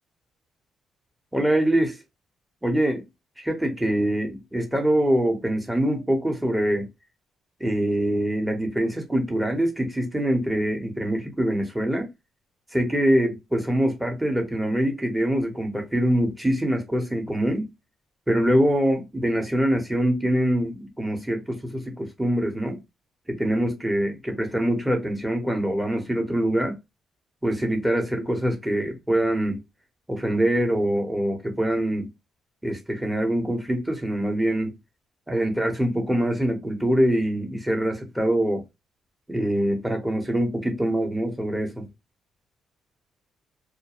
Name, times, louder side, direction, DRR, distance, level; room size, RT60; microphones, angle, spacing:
voice 1, 1.3-2.0 2.6-3.1 3.4-6.9 7.6-12.1 12.7-17.7 18.3-22.8 23.3-26.8 27.4-29.6 30.1-32.1 32.6-34.7 35.3-38.6 39.3-41.9, right 1 dB, 5° right, 0.9 m, -24 dB
2.3 x 2.1 x 3.0 m
cardioid pair, 90°, 0 cm